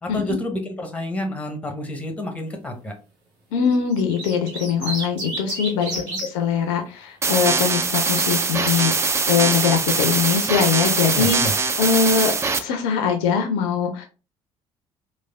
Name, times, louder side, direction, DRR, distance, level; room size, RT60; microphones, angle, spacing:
voice 1, 0.0-2.9 5.9-6.2 11.1-11.5, left 1 dB, 10° left, 4 dB, 0.8 m, -29 dB
voice 2, 3.5-12.3 12.6-14.1, left 6 dB, 60° left, 4 dB, 0.4 m, -22 dB
sound 1, 3.7-6.3 7.5-8.0, right 2 dB, 65° right, 0.9 m, -31 dB
sound 2, 7.2-12.6, right 4 dB, 20° right, 0.4 m, -22 dB
3.1 x 2.2 x 2.3 m, 0.33 s
figure-of-eight pair, 50°, 16 cm